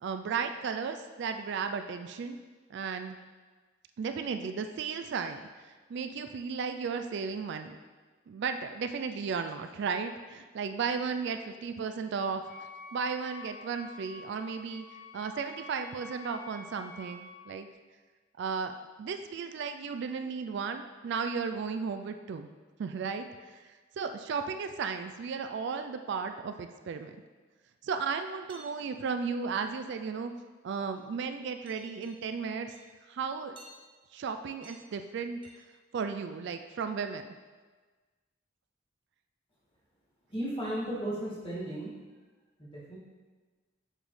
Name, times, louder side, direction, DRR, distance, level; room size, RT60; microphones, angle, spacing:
voice 1, 0.0-2.4 2.7-3.2 4.0-7.8 8.3-12.4 12.9-14.9 15.1-17.7 18.4-22.5 22.8-23.6 24.0-27.1 27.8-30.3 30.6-32.7 33.1-33.6 34.1-35.4 35.9-37.2, right 5 dB, 60° right, 7 dB, 0.3 m, -35 dB
Wind instrument woodwind instrument, 12.4-17.3, left 2 dB, 60° left, 1.1 m, -48 dB
sound 1, 28.5-28.7 29.5-29.9 30.3-30.6 30.9-31.4 31.7-32.2 32.7-32.8 33.6-33.8 34.6-34.9 35.4-35.6, right 1 dB, 25° right, 0.9 m, -54 dB
voice 2, 40.3-42.0 42.6-43.0, right 1 dB, 25° left, -7 dB, 2.0 m, -35 dB
7.5 x 5.0 x 3.2 m, 1.4 s
head